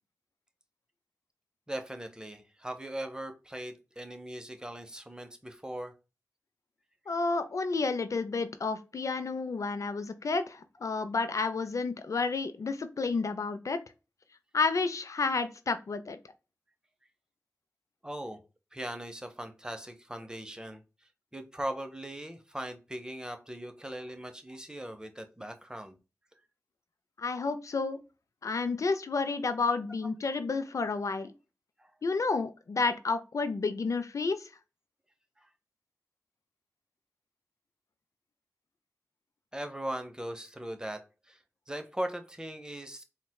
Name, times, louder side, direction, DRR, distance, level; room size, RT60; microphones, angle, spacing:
voice 1, 1.7-5.9 18.0-18.4 18.7-20.8 21.3-26.0 31.8-31.9 35.4-35.5 39.5-43.0, right 1 dB, 15° right, 6 dB, 0.6 m, -39 dB
voice 2, 7.1-13.8 14.5-16.2 27.2-28.0 28.4-31.3 32.0-34.5, left 4 dB, 65° left, 10 dB, 0.4 m, -30 dB
4.0 x 2.2 x 2.2 m, 0.30 s
cardioid pair, 40°, 6 cm